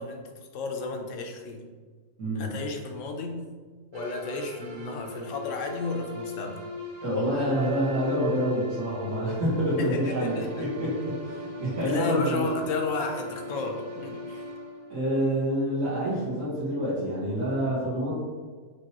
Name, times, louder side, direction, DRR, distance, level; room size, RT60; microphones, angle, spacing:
voice 1, 0.0-1.6 2.4-3.4 3.9-6.6 9.8-10.6 11.8-14.5, left 3 dB, 65° left, 3 dB, 0.9 m, -32 dB
sound 1, 3.9-15.7, left 2 dB, 85° right, 1.1 m, -40 dB
voice 2, 7.0-12.5 14.9-18.1, equal, 65° right, -8 dB, 1.7 m, -27 dB
5.2 x 3.0 x 2.8 m, 1.5 s
omnidirectional pair, 1.5 m